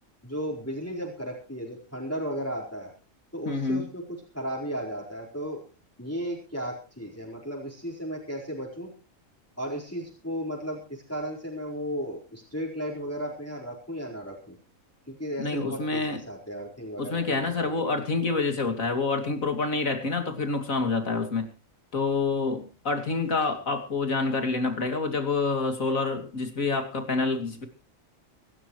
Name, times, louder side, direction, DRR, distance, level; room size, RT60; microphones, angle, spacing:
voice 1, 0.2-2.9 3.3-5.6 6.0-8.9 9.6-14.5 15.1-18.0, equal, 10° left, -3 dB, 4.4 m, -35 dB
voice 2, 3.4-3.9 15.4-16.2 17.0-21.5 21.9-27.7, left 3 dB, 75° left, 6 dB, 3.2 m, -27 dB
25.0 x 12.5 x 3.2 m, 0.35 s
omnidirectional pair, 1.4 m